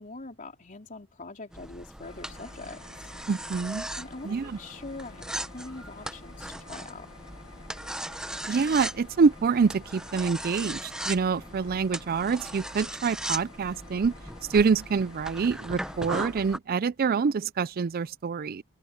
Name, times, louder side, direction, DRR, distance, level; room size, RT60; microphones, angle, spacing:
voice 1, 0.0-3.1 3.9-5.3 5.5-7.1 11.5-11.6, left 2 dB, 35° left, 3.7 m, -43 dB
sound 1, 1.5-16.6, right 1 dB, 5° right, 0.6 m, -38 dB
sound 2, 2.0-16.6, left 4 dB, 80° left, 1.9 m, -52 dB
voice 2, 3.3-3.9 4.2-4.6 8.5-14.1 14.5-18.6, right 5 dB, 40° right, 0.4 m, -26 dB
open air
head